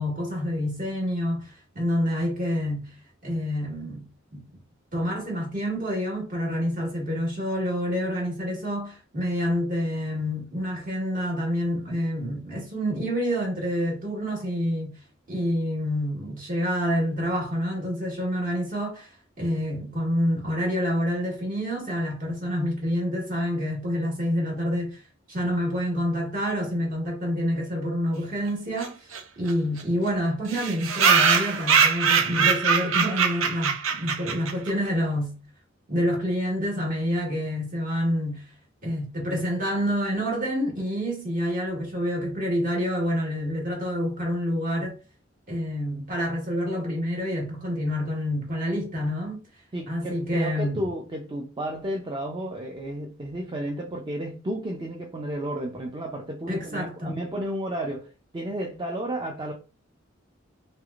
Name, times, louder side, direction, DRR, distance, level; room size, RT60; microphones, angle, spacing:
voice 1, 0.0-2.9 3.2-4.1 4.3-4.4 4.9-15.0 15.3-19.1 19.4-25.0 25.3-29.0 29.4-35.4 35.9-38.4 38.8-44.9 45.5-49.4 49.9-50.9 56.5-57.2, equal, 45° right, 1.4 m, -27 dB
sound 1, 28.8-28.9 29.1-29.2 29.5-29.6 29.8-29.9 30.5-34.7, right 6 dB, 80° right, 0.6 m, -22 dB
voice 2, 49.7-59.5, right 1 dB, 25° right, 0.4 m, -32 dB
3.3 x 3.1 x 2.4 m
head